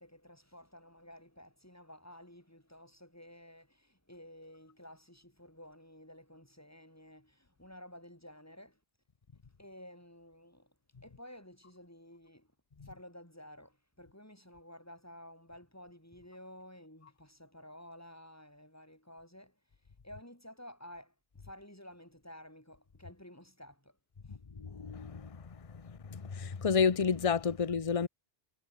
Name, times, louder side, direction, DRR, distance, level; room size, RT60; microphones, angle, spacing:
voice 1, 0.0-8.8 9.6-12.5 12.8-24.4, left 1 dB, 15° left, 6.6 m, -53 dB
voice 2, 24.6-28.1, left 6 dB, 30° left, 1.0 m, -31 dB
omnidirectional pair, 1.2 m